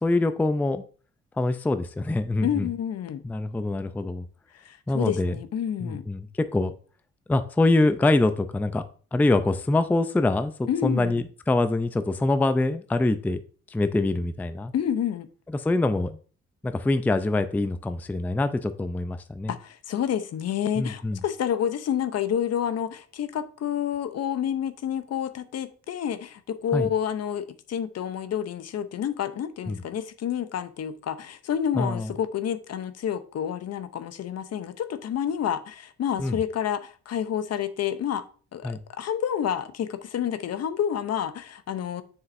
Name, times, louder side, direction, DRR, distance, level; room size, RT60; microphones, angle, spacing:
voice 1, 0.0-0.8 1.4-2.7 3.2-4.3 4.9-5.3 5.8-6.7 7.3-8.8 9.1-13.4 13.7-14.7 15.6-16.2 16.6-19.5 20.8-21.2 26.7-26.9 29.7-29.8 31.7-32.1 36.2-36.4 38.6-38.8, left 2 dB, 5° left, 0.4 m, -24 dB
voice 2, 2.4-3.2 4.5-6.0 10.7-11.1 14.7-15.3 19.5-38.2 38.5-42.0, left 9 dB, 55° left, 0.7 m, -29 dB
7.2 x 6.4 x 2.6 m
cardioid pair, 90°, 30 cm